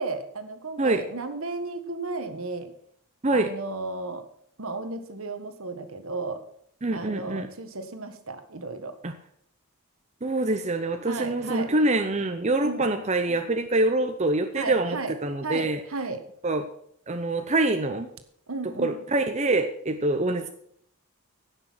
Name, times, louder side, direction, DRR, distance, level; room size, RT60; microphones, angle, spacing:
voice 1, 0.0-2.7 3.3-4.3 4.6-6.4 6.9-9.0 11.1-11.7 12.6-12.9 14.5-15.1 15.4-16.2 18.5-19.0, right 3 dB, 65° right, 8 dB, 1.6 m, -34 dB
voice 2, 6.8-7.5 9.0-9.1 10.2-15.8 16.4-16.6 17.1-18.1 18.6-20.5, right 2 dB, 30° right, 6 dB, 0.8 m, -25 dB
16.0 x 6.7 x 6.2 m, 0.67 s
head